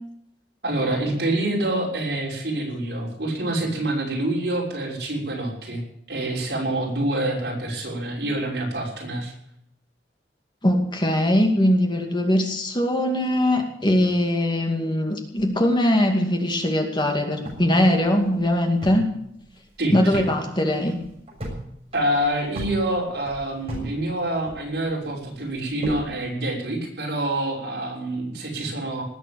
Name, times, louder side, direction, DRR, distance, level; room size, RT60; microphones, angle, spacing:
voice 1, 0.6-5.8 6.1-9.3 19.8-20.3 21.9-29.0, right 1 dB, 65° right, -2 dB, 6.4 m, -26 dB
voice 2, 10.6-19.1 19.9-21.0, left 1 dB, 25° left, 3 dB, 2.3 m, -21 dB
sound 1, 17.4-19.1 19.4-19.5 19.8-20.3 20.7-21.6 21.9-23.9 24.2-24.9 25.4-26.1, equal, 35° right, 6.9 m, -35 dB
19.5 x 8.2 x 8.6 m, 0.75 s
head